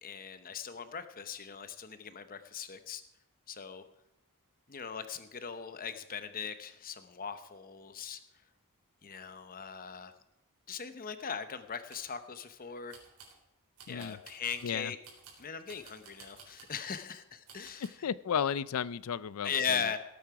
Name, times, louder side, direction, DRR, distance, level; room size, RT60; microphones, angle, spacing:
voice 1, 0.0-3.0 3.5-3.8 4.7-8.2 9.0-10.1 10.7-13.0 13.9-15.0 15.4-18.1 19.4-20.0, left 7 dB, 40° left, 10 dB, 0.9 m, -39 dB
sound 1, 11.6-12.1 12.9-13.4 13.8-14.7 15.0-16.8 17.5-17.9, right 5 dB, 80° right, 4.0 m, -54 dB
voice 2, 13.9-14.2 14.6-14.9 18.0-19.8, left 7 dB, 70° left, 19 dB, 0.4 m, -33 dB
18.0 x 8.7 x 4.8 m, 0.88 s
head